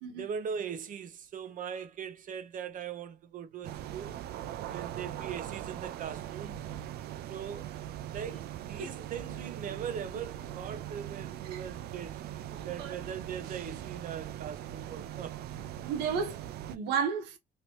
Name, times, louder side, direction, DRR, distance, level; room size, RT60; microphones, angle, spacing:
voice 1, 0.2-4.2 4.7-6.6 7.3-7.7 8.1-12.2 12.6-15.4, right 7 dB, 50° right, 0.8 m, -40 dB
sound 1, 3.6-16.8, right 11 dB, 70° right, 0.4 m, -41 dB
voice 2, 12.5-13.0 15.8-17.4, right 6 dB, 90° right, 1.1 m, -33 dB
2.9 x 2.9 x 3.0 m
cardioid pair, 110°, 17 cm